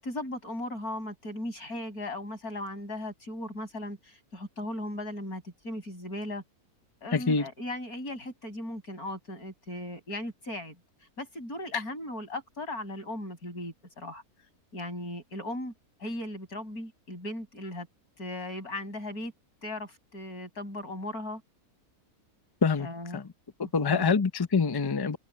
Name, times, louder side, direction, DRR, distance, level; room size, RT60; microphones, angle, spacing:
voice 1, 0.0-6.4 7.0-10.8 11.2-14.2 14.7-15.7 16.0-17.9 18.2-19.3 19.6-21.4 22.8-23.2 23.6-24.1, left 1 dB, 70° left, 7.9 m, -37 dB
voice 2, 7.1-7.5 22.6-22.9 23.1-23.3 23.6-25.2, left 5 dB, 25° left, 0.6 m, -25 dB
omnidirectional pair, 1.6 m